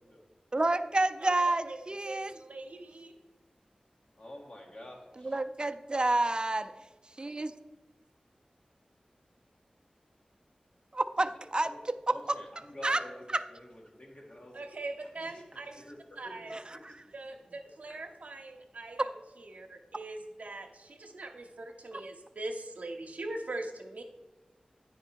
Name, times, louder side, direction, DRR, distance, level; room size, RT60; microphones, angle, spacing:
voice 1, 0.5-2.3 5.2-6.7 7.2-7.5 10.9-11.7 12.1-12.2 12.8-13.0 16.5-16.9 21.9-22.0, right 2 dB, 35° right, 10 dB, 0.5 m, -29 dB
voice 2, 1.2-1.8 2.0-3.2 14.5-15.8 16.2-16.6 17.1-24.0, right 2 dB, 80° right, 2 dB, 0.7 m, -42 dB
voice 3, 4.1-5.4 11.6-11.8 12.1-14.6 15.2-15.4 15.7-17.1 17.9-18.0, left 1 dB, 55° left, -1 dB, 1.8 m, -49 dB
9.2 x 5.2 x 4.5 m, 1.2 s
wide cardioid pair, 45°, 3 cm